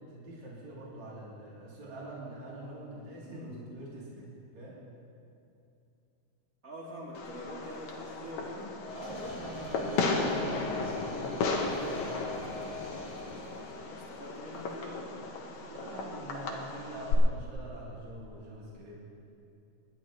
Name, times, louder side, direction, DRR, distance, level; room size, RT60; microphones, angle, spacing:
voice 1, 0.0-4.8 8.9-11.8 15.6-19.1, right 1 dB, 45° right, -6 dB, 4.1 m, -44 dB
voice 2, 3.2-4.0 6.6-8.7 13.3-15.3, equal, 25° right, -6 dB, 2.9 m, -45 dB
Fireworks, 7.1-17.1, left 3 dB, 60° left, 2.1 m, -35 dB
sound 1, 8.8-14.0, left 3 dB, 35° left, 1.6 m, -41 dB
27.5 x 11.0 x 3.1 m, 2.7 s
omnidirectional pair, 4.5 m